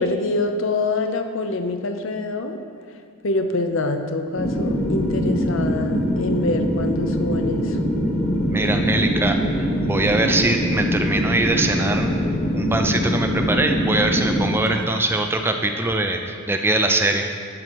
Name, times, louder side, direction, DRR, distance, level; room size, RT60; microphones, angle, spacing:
voice 1, 0.0-2.6 3.2-7.8, left 2 dB, 65° left, 7 dB, 0.6 m, -25 dB
sound 1, 4.4-14.5, equal, 35° left, 1.5 m, -23 dB
voice 2, 8.5-12.1 12.5-17.3, right 2 dB, 10° right, 4 dB, 0.4 m, -22 dB
11.0 x 7.7 x 3.1 m, 2.2 s
head